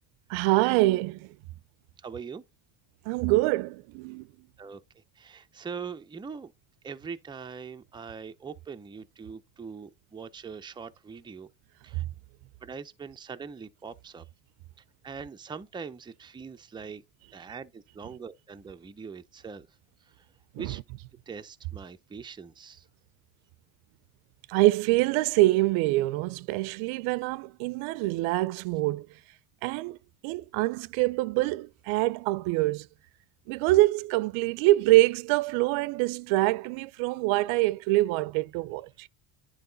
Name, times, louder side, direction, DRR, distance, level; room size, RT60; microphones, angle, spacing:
voice 1, 0.3-1.3 3.1-4.2 20.6-20.7 24.5-29.1 29.6-30.0 30.2-32.9 33.5-39.1, right 19 dB, 80° right, 0.6 m, -25 dB
voice 2, 2.0-2.4 4.6-6.5 6.8-11.5 11.8-12.0 12.6-14.3 15.0-17.0 17.3-19.7 20.0-20.3 20.6-20.8 21.3-22.9, right 5 dB, 10° right, 0.5 m, -42 dB
10.0 x 4.7 x 3.9 m
cardioid pair, 130°, 46 cm